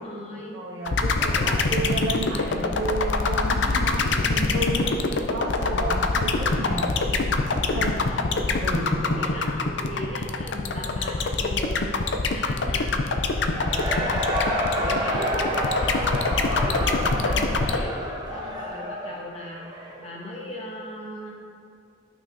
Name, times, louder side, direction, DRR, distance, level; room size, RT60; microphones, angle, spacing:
voice 1, 0.0-0.6 1.3-1.7 5.6-6.1 7.4-14.1 14.8-18.0 18.3-21.3, left 1 dB, 30° left, -3 dB, 1.2 m, -37 dB
voice 2, 0.5-4.9 5.3-7.9 8.6-9.3, right 1 dB, 65° right, -6 dB, 1.8 m, -32 dB
sound 1, 0.9-17.8, left 3 dB, 65° left, 0.5 m, -24 dB
Cheering / Crowd, 13.3-20.1, equal, 20° right, 0.9 m, -29 dB
12.0 x 6.0 x 2.7 m, 2.3 s
head